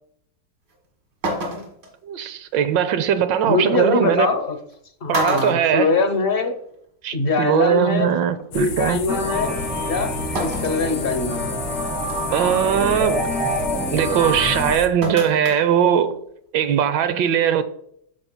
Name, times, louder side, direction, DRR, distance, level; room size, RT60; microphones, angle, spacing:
sound 1, 0.7-0.8 1.2-1.9 3.5-3.6 4.6-4.7 5.1-6.5 6.8-6.9 8.2-8.3 10.4-10.9 11.4-11.5 12.1-12.4 15.0-15.6 16.0-16.1, right 2 dB, 65° right, 2.4 m, -28 dB
voice 1, 2.0-4.3 5.1-5.9 7.0-9.0 12.3-13.3 13.9-16.2 16.5-17.6, right 8 dB, 85° right, 1.4 m, -20 dB
voice 2, 3.5-4.6 5.0-6.6 7.1-8.2 8.5-9.6 9.9-10.1 10.4-11.6, left 3 dB, 40° left, 1.0 m, -22 dB
sound 2, 8.5-14.9, left 6 dB, 80° left, 1.5 m, -31 dB
sound 3, 9.1-14.7, right 1 dB, 5° right, 1.0 m, -27 dB
14.0 x 5.1 x 2.2 m
omnidirectional pair, 2.0 m